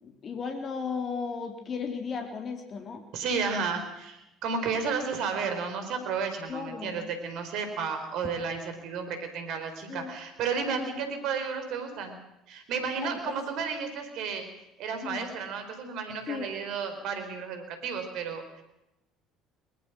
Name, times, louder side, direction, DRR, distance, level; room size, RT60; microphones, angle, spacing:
voice 1, 0.0-3.0 6.5-7.0 9.9-10.1 10.6-11.0 13.0-13.4 15.0-15.3 16.3-16.5, left 5 dB, 45° left, 4 dB, 3.4 m, -35 dB
voice 2, 3.1-12.2 12.5-14.5 14.8-18.6, right 5 dB, 65° right, 7 dB, 4.4 m, -32 dB
21.5 x 21.0 x 6.2 m, 0.89 s
hypercardioid pair, 60°, 0 cm